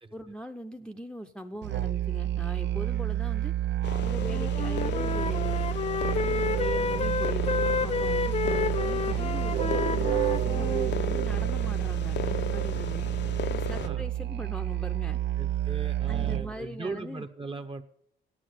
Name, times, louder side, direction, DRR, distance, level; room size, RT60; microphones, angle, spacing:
voice 1, 0.1-3.5 4.0-5.6 6.1-13.1 13.5-15.2 16.1-17.3, equal, 5° left, 7 dB, 0.8 m, -41 dB
Musical instrument, 1.6-16.6, right 13 dB, 60° right, 0.5 m, -29 dB
sound 1, 3.8-13.9, left 8 dB, 60° left, 0.7 m, -36 dB
Wind instrument woodwind instrument, 4.2-10.9, left 7 dB, 30° left, 0.5 m, -31 dB
voice 2, 13.7-14.1 15.4-17.8, right 3 dB, 25° right, 10 dB, 1.0 m, -39 dB
8.7 x 8.6 x 9.2 m, 0.69 s
cardioid pair, 90°, 20 cm